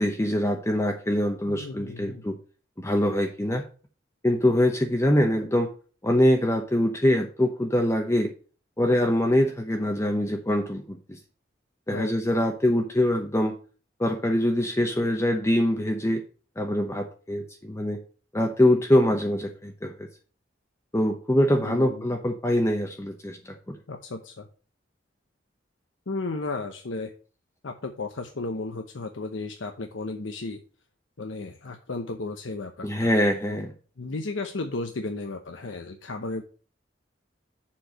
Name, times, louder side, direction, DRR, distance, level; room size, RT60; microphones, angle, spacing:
voice 1, 0.0-2.4 2.8-3.6 4.2-5.7 6.0-8.3 8.8-11.2 11.9-13.6 14.0-16.2 16.6-18.0 18.3-20.1 20.9-23.8 32.8-33.7, left 1 dB, 15° left, 3 dB, 0.8 m, -24 dB
voice 2, 1.5-2.2 11.9-12.1 21.6-22.0 23.9-24.5 26.1-27.1 27.6-30.6 31.2-33.1 33.5-33.6 34.0-36.4, left 3 dB, 80° left, 5 dB, 0.8 m, -34 dB
7.2 x 4.7 x 6.4 m, 0.38 s
head